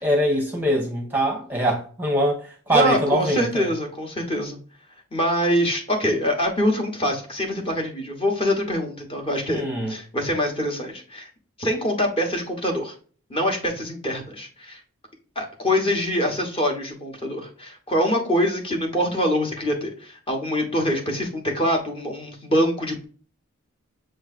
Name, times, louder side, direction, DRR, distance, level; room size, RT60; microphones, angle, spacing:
voice 1, 0.0-3.7 9.5-9.9, equal, 10° right, 0.9 m, -23 dB
voice 2, 2.7-4.6 5.1-9.6 9.9-11.3 11.6-12.9 13.3-14.8 15.4-23.0, equal, 25° left, 1.1 m, -24 dB
6.4 x 3.1 x 2.4 m
head